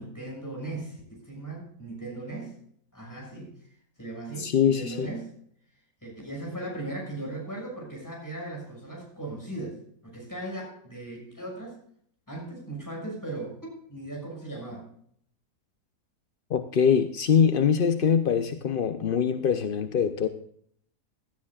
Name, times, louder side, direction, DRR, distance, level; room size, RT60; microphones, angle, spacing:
voice 1, 0.0-2.5 2.9-3.5 4.0-5.3 6.0-9.8 10.0-11.8 12.3-14.9, right 2 dB, 10° left, -1 dB, 6.3 m, -38 dB
voice 2, 4.4-5.1 16.5-20.3, left 7 dB, 55° left, 9 dB, 0.6 m, -23 dB
17.5 x 12.5 x 2.4 m, 0.64 s
omnidirectional pair, 1.7 m